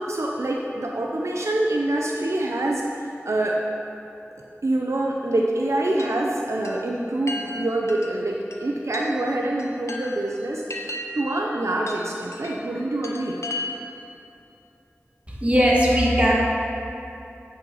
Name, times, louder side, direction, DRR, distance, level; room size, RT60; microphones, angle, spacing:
voice 1, 0.1-3.6 4.6-13.4, right 1 dB, 75° right, -1 dB, 0.7 m, -26 dB
Chime, 6.0-14.1, left 2 dB, 70° left, 0.8 m, -37 dB
voice 2, 15.3-16.3, equal, 25° right, -4 dB, 1.9 m, -19 dB
8.6 x 5.5 x 5.5 m, 2.8 s
wide cardioid pair, 45°, 5 cm